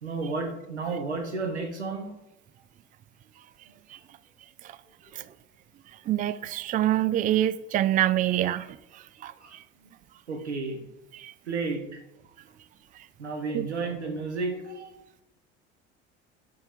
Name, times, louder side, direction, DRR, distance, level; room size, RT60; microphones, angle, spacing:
voice 1, 0.0-2.1 9.4-9.6 9.8-9.9 10.3-10.8 11.5-12.0 13.2-15.0, right 3 dB, 90° right, 1.1 m, -32 dB
voice 2, 6.1-8.7 8.9-9.3 11.1-11.3 13.5-13.7, right 13 dB, 25° right, 0.3 m, -25 dB
5.4 x 5.4 x 4.5 m
figure-of-eight pair, 65°, 33 cm